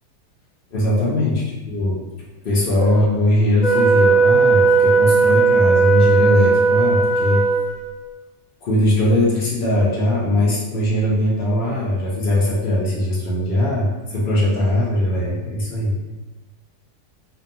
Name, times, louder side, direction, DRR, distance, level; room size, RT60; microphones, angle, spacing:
voice 1, 0.7-2.0 2.4-7.4 8.6-16.0, left 1 dB, 90° left, -6 dB, 0.4 m, -20 dB
Wind instrument woodwind instrument, 3.6-8.0, right 4 dB, 50° left, 0.9 m, -16 dB
2.7 x 2.2 x 2.6 m, 1.1 s
omnidirectional pair, 1.7 m